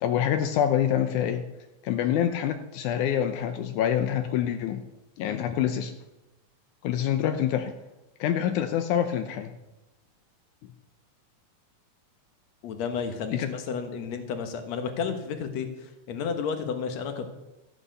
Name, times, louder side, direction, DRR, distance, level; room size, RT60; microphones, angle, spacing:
voice 1, 0.0-1.5 1.8-4.8 5.2-5.9 6.8-7.7 8.2-9.5 13.3-13.5, left 10 dB, 85° left, 7 dB, 2.2 m, -26 dB
voice 2, 12.6-15.7 16.1-17.3, left 6 dB, 65° left, 7 dB, 2.5 m, -32 dB
14.5 x 8.9 x 6.7 m, 0.99 s
omnidirectional pair, 3.5 m